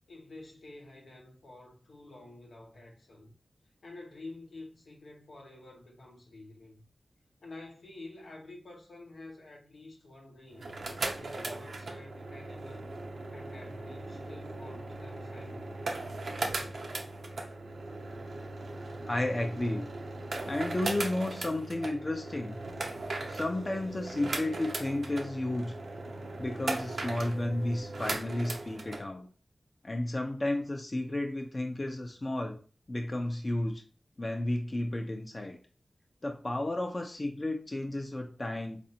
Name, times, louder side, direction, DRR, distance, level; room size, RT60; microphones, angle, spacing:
voice 1, 0.1-3.3 3.8-6.8 7.4-10.8 11.2-12.9 13.3-15.9, left 2 dB, 85° left, 0.9 m, -49 dB
sound 1, 10.5-29.0, right 2 dB, 80° right, 0.5 m, -38 dB
voice 2, 19.1-19.9 20.5-22.6 23.3-25.7 26.4-29.3 29.8-32.6 32.9-33.8 34.2-35.6 36.2-38.8, left 1 dB, 45° left, 0.6 m, -32 dB
4.2 x 2.5 x 2.8 m
cardioid pair, 50°, 0 cm